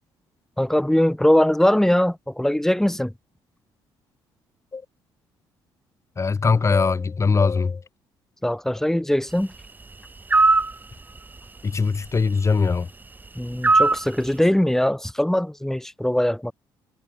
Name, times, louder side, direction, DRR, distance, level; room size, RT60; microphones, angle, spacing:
voice 1, 0.6-3.1 8.4-9.5 13.4-16.5, left 1 dB, 5° left, 4.5 m, -21 dB
voice 2, 6.2-7.8 11.6-12.9, left 4 dB, 30° left, 3.9 m, -21 dB
sound 1, 10.3-10.7 13.6-14.0, right 3 dB, 20° right, 1.0 m, -16 dB
cardioid pair, 90°, 9 cm